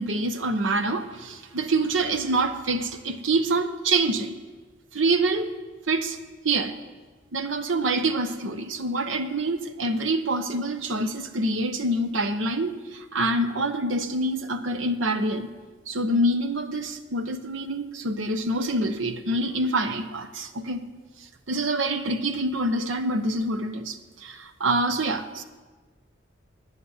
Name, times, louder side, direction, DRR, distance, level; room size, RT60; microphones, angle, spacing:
voice 1, 0.0-4.4 4.9-5.5 5.9-6.2 6.4-6.7 7.3-15.5 15.9-20.8 21.5-25.4, right 2 dB, 80° right, 9 dB, 0.9 m, -26 dB
10.5 x 8.0 x 9.6 m, 1.3 s
head